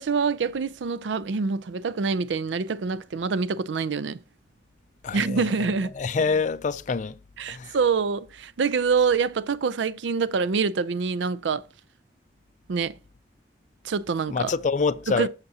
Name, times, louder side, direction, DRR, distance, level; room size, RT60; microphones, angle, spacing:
voice 1, 0.0-4.2 5.1-5.9 7.4-11.6 12.7-12.9 13.8-14.5 15.2-15.3, right 5 dB, 75° right, 0.4 m, -25 dB
voice 2, 5.0-5.7 5.9-7.2 7.5-7.8 14.3-15.3, left 4 dB, 40° left, 0.4 m, -26 dB
8.1 x 6.7 x 2.8 m
head